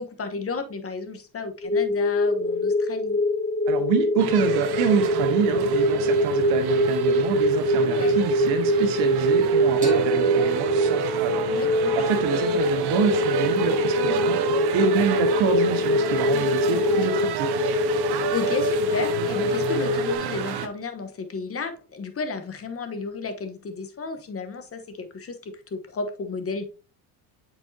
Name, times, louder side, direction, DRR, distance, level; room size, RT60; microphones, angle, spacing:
voice 1, 0.0-3.2 7.8-8.1 11.5-12.4 14.1-14.4 16.3-17.0 18.3-26.7, left 4 dB, 30° left, 1.1 m, -33 dB
sound 1, 1.6-20.2, equal, 10° left, 0.9 m, -23 dB
voice 2, 3.7-11.5 11.9-14.4 14.7-17.6, right 6 dB, 80° right, 1.6 m, -27 dB
sound 2, 4.2-20.7, right 9 dB, 55° right, 0.9 m, -31 dB
sound 3, 9.8-13.2, right 8 dB, 15° right, 2.5 m, -39 dB
7.6 x 4.9 x 2.7 m
supercardioid pair, 100°, 47 cm